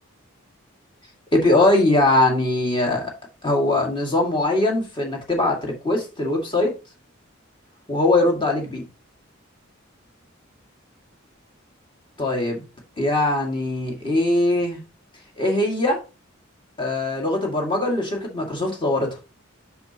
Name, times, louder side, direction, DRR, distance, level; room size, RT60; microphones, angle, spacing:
voice 1, 1.3-3.1 3.4-6.7 7.9-8.9 12.2-12.6 13.0-14.8 15.4-16.0 16.8-19.2, left 2 dB, 25° left, 2.1 m, -21 dB
7.8 x 6.3 x 2.9 m
head